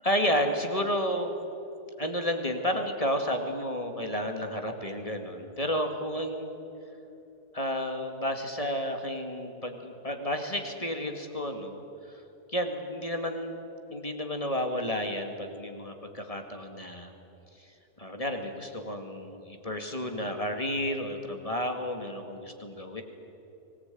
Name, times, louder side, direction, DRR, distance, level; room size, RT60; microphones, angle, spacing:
voice 1, 0.0-1.4 2.0-6.6 7.5-11.8 12.1-12.2 12.5-13.6 13.9-17.1 18.0-23.0, equal, 25° left, 5 dB, 2.2 m, -31 dB
24.5 x 19.5 x 9.3 m, 2.9 s
omnidirectional pair, 1.6 m